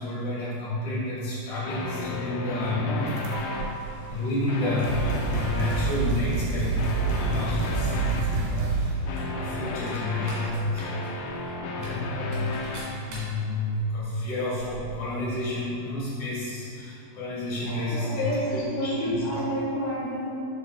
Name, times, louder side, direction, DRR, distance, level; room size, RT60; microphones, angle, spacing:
voice 1, 0.0-3.2 4.1-11.0 11.3-12.7 13.1-19.1, left 2 dB, 55° left, -9 dB, 2.1 m, -30 dB
sound 1, 1.6-3.7 4.3-6.0 6.8-8.3 9.1-12.8, left 2 dB, 90° left, 3.6 m, -33 dB
sound 2, 2.6-4.2 4.7-5.0 5.3-6.1 6.7-6.9 7.1-8.0 8.3-8.4 9.1-15.3 15.5-15.6, right 3 dB, 55° right, 2.5 m, -44 dB
sound 3, 3.1-3.7 4.5-4.6 4.8-9.0, right 5 dB, 80° right, 2.7 m, -28 dB
voice 2, 17.6-20.3, equal, 75° left, -6 dB, 2.8 m, -29 dB
11.0 x 7.1 x 2.3 m, 2.7 s
omnidirectional pair, 6.0 m